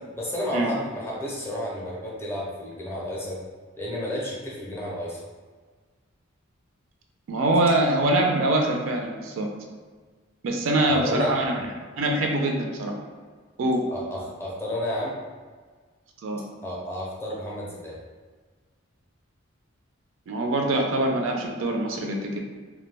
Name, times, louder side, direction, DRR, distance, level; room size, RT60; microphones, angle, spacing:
voice 1, 0.2-3.4 3.8-5.2 10.9-11.3 13.9-15.2 16.6-18.0, left 1 dB, 10° left, -5 dB, 0.5 m, -31 dB
voice 2, 7.3-9.5 10.4-11.6 12.0-12.9 13.6-13.8 16.2-16.4 20.3-22.4, right 1 dB, 65° right, 2 dB, 0.4 m, -24 dB
2.2 x 2.1 x 3.2 m, 1.5 s
head